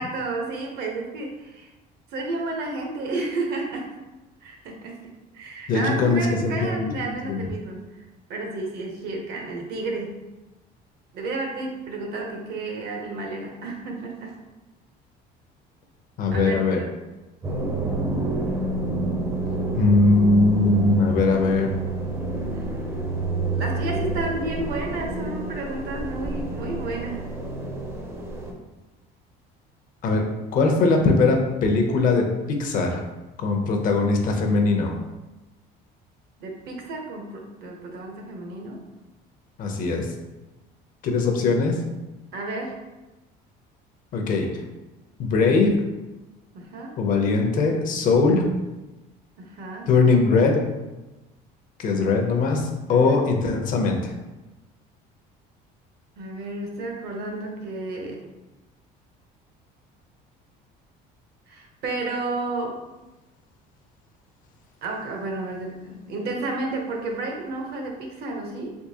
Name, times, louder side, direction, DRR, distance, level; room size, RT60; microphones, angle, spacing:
voice 1, 0.0-1.7 2.1-4.0 4.4-5.0 5.3-7.8 8.3-10.2 11.1-14.4 16.3-16.9 22.5-22.6 23.5-27.2 36.4-38.8 42.3-42.8 46.5-46.9 49.4-49.9 52.9-53.2 56.2-58.3 61.5-62.8 64.8-68.7, right 2 dB, 65° right, 1 dB, 0.7 m, -31 dB
voice 2, 5.7-6.9 7.3-7.4 16.2-16.8 19.8-21.7 30.0-30.2 30.5-33.0 33.4-34.9 39.6-40.1 41.0-41.8 44.1-44.5 45.2-45.8 47.0-48.5 49.9-50.6 51.8-54.1, left 3 dB, 50° left, 2 dB, 0.6 m, -20 dB
sound 1, 17.4-28.5, right 2 dB, 15° right, 0.5 m, -28 dB
3.6 x 2.8 x 2.7 m, 1.1 s
cardioid pair, 140°, 18 cm